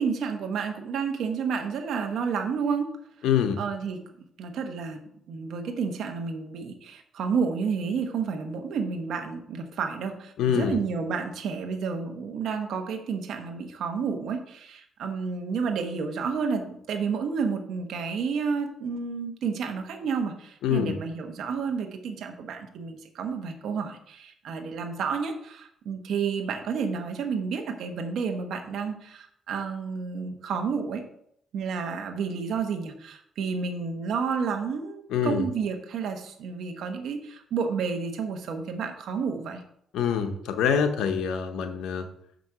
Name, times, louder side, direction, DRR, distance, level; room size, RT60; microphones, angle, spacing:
voice 1, 0.0-2.9 3.6-4.0 4.4-5.0 5.3-31.0 31.5-39.6, right 5 dB, 70° right, 5 dB, 1.1 m, -30 dB
voice 2, 3.2-3.6 10.4-10.8 20.6-21.0 35.1-35.5 39.9-42.1, left 7 dB, 85° left, 7 dB, 0.8 m, -25 dB
6.2 x 5.1 x 5.9 m, 0.69 s
cardioid pair, 90°, 0 cm